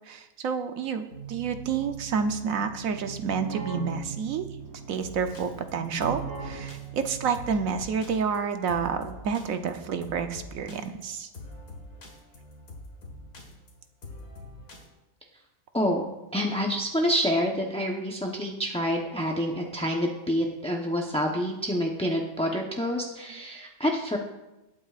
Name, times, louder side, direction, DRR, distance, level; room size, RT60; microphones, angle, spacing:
voice 1, 0.1-4.5 4.9-11.3, right 6 dB, 75° right, 7 dB, 1.1 m, -29 dB
Keyboard (musical), 1.1-8.0, right 5 dB, 60° right, 3.1 m, -40 dB
sound 1, 5.0-14.9, left 2 dB, 90° left, 2.3 m, -45 dB
voice 2, 15.7-24.2, equal, 5° left, 0 dB, 0.6 m, -27 dB
19.5 x 8.7 x 2.4 m, 1.0 s
omnidirectional pair, 1.5 m